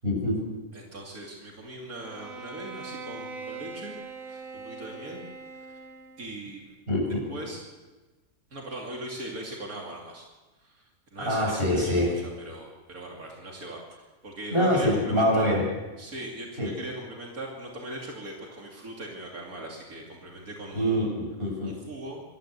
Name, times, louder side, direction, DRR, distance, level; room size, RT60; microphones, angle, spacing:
voice 1, 0.0-0.4 6.9-7.2 11.2-12.1 14.5-15.6 16.6-16.7 20.7-21.7, equal, 40° right, -2 dB, 7.7 m, -24 dB
voice 2, 0.7-5.2 5.7-5.8 6.2-6.8 7.3-7.6 8.5-10.3 10.6-15.5 16.0-21.1 21.6-22.2, right 1 dB, 90° right, -1 dB, 3.2 m, -40 dB
Bowed string instrument, 2.0-6.4, right 4 dB, 70° right, 1.8 m, -42 dB
24.5 x 13.5 x 8.2 m, 1.2 s
omnidirectional pair, 1.5 m